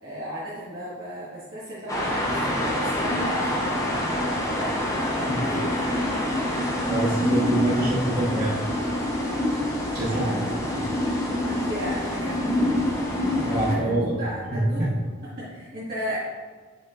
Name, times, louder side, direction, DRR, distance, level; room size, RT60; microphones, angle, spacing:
voice 1, 0.0-4.8 5.2-6.0 10.0-10.8 11.4-12.8 13.7-14.9 15.4-16.2, equal, 45° right, -9 dB, 1.6 m, -35 dB
sound 1, 1.9-13.8, left 1 dB, 15° left, 0.8 m, -26 dB
voice 2, 6.9-8.6 9.9-10.4 10.8-10.9 13.3-14.2 14.5-14.9, right 1 dB, 20° right, -11 dB, 1.2 m, -25 dB
8.4 x 4.9 x 2.5 m, 1.4 s
head